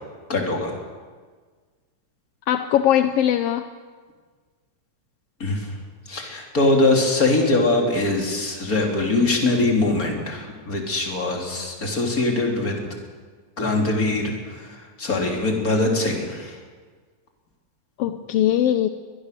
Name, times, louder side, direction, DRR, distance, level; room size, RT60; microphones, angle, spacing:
voice 1, 0.3-0.7 5.4-5.7 6.1-12.8 13.6-14.6 15.0-16.5, left 2 dB, 30° left, 1 dB, 3.6 m, -22 dB
voice 2, 2.5-3.7 18.0-18.9, left 11 dB, 70° left, 9 dB, 1.5 m, -20 dB
22.5 x 20.5 x 6.8 m, 1.5 s
omnidirectional pair, 3.4 m